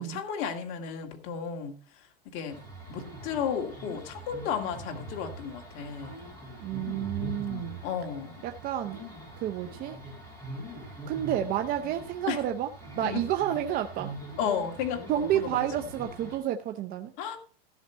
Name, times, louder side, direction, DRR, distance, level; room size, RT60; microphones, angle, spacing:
voice 1, 0.0-1.8 2.3-2.6 2.9-6.2 7.8-8.4 12.3-12.4 13.0-13.2 14.4-15.7 17.2-17.4, left 7 dB, 40° left, 4 dB, 2.1 m, -33 dB
sound 1, 2.5-16.4, right 1 dB, 10° left, 5.3 m, -43 dB
voice 2, 6.6-7.8 8.4-9.0 9.4-10.0 11.1-12.7 13.0-14.1 15.1-17.1, right 11 dB, 30° right, 6 dB, 0.7 m, -30 dB
15.5 x 6.6 x 4.4 m, 0.40 s
supercardioid pair, 150°, 30 cm